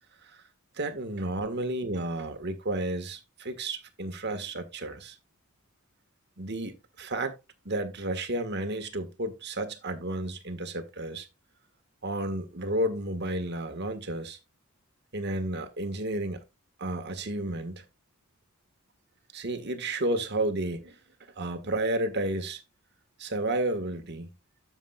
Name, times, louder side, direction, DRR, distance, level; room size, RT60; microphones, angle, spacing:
voice 1, 0.7-5.2 6.4-7.3 7.6-11.3 12.0-14.4 15.1-16.4 16.8-17.8 19.3-20.9 21.4-22.6 23.2-24.3, right 1 dB, 50° right, 1.6 m, -32 dB
12.0 x 7.2 x 2.3 m
head